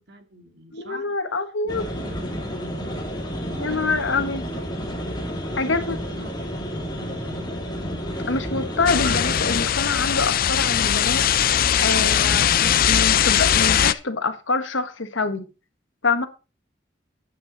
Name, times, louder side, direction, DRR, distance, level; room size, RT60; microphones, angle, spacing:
voice 1, 0.0-1.1 1.6-3.1 3.5-5.0 5.5-7.7, right 1 dB, 60° right, 2.1 m, -44 dB
voice 2, 0.7-1.8 3.6-4.4 5.6-6.0 8.3-15.5 16.0-16.3, left 3 dB, 85° left, 1.4 m, -26 dB
sound 1, 1.7-9.7, equal, 25° left, 2.8 m, -31 dB
sound 2, 8.9-13.9, left 9 dB, 50° left, 0.5 m, -20 dB
10.5 x 8.6 x 4.0 m
head